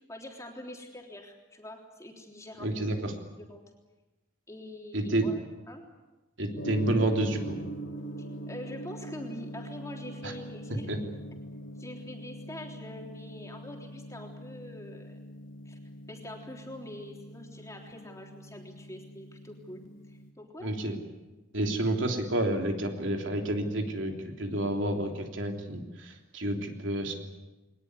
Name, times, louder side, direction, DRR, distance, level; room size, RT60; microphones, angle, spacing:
voice 1, 0.0-2.7 3.4-3.6 4.5-5.4 5.7-5.8 8.2-10.9 11.8-15.2 15.7-15.8 16.1-19.8 20.1-20.7, left 1 dB, 15° left, 1 dB, 3.5 m, -44 dB
voice 2, 2.6-3.1 4.9-5.3 6.4-7.6 10.2-10.3 10.9-11.0 20.6-21.0 21.5-27.1, right 1 dB, 70° right, 3 dB, 3.4 m, -29 dB
Gong, 6.5-20.3, right 1 dB, 75° left, 2.5 m, -43 dB
22.5 x 19.5 x 9.8 m, 1.1 s
head